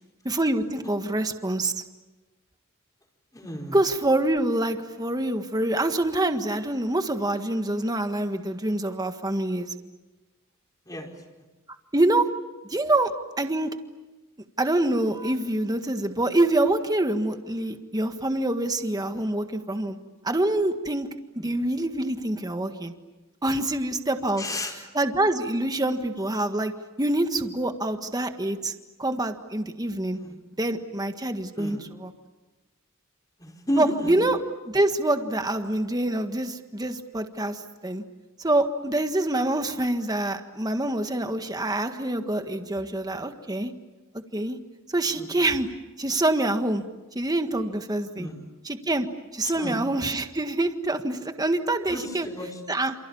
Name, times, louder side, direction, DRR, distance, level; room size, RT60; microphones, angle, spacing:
voice 1, 0.3-1.8 3.7-9.7 11.9-12.3 12.6-13.1 13.4-13.7 14.6-20.0 20.2-21.1 21.4-22.9 23.4-24.4 24.9-26.7 27.0-28.7 29.0-30.2 30.6-32.1 33.8-34.4 34.7-38.0 38.4-43.7 44.3-44.6 44.9-45.7 46.0-46.8 47.2-48.3 48.6-49.1 49.3-52.3 52.7-52.9, right 1 dB, 20° right, 7 dB, 1.7 m, -26 dB
voice 2, 3.3-3.8 10.9-11.1 19.1-19.2 24.4-24.7 30.1-30.3 31.6-31.8 33.4-34.1 45.1-45.3 48.2-48.4 49.6-49.7 51.9-52.6, equal, 15° left, 2 dB, 5.0 m, -32 dB
28.5 x 28.5 x 7.2 m, 1.2 s
head